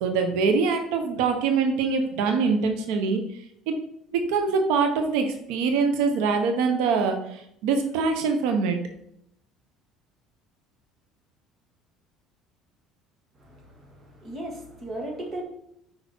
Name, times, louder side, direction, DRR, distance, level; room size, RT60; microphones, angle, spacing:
voice 1, 0.0-3.2 3.7-3.8 4.1-8.8, right 5 dB, 85° right, 6 dB, 0.9 m, -24 dB
voice 2, 13.4-15.4, right 1 dB, 30° right, 1 dB, 2.0 m, -37 dB
8.7 x 5.3 x 4.5 m, 0.76 s
cardioid pair, 155°, 0 cm